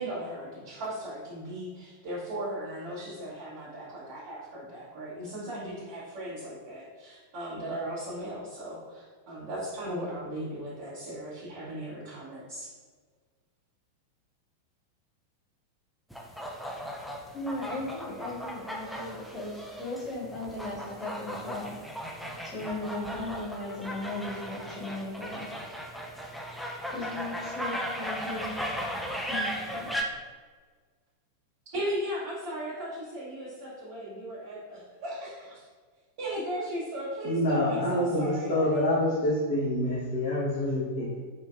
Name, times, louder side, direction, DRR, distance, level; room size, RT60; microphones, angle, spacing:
voice 1, 0.0-12.7 31.7-35.7 36.2-38.8, right 1 dB, 50° right, -11 dB, 1.0 m, -37 dB
sound 1, 16.1-30.0, equal, ahead, 0.4 m, -37 dB
voice 2, 17.3-21.8 22.4-25.5 26.9-28.5 29.3-29.9, left 2 dB, 20° left, -6 dB, 1.1 m, -37 dB
voice 3, 37.2-41.2, left 1 dB, 50° left, -9 dB, 0.8 m, -27 dB
3.7 x 2.6 x 2.4 m, 1.5 s
figure-of-eight pair, 90°, 0 cm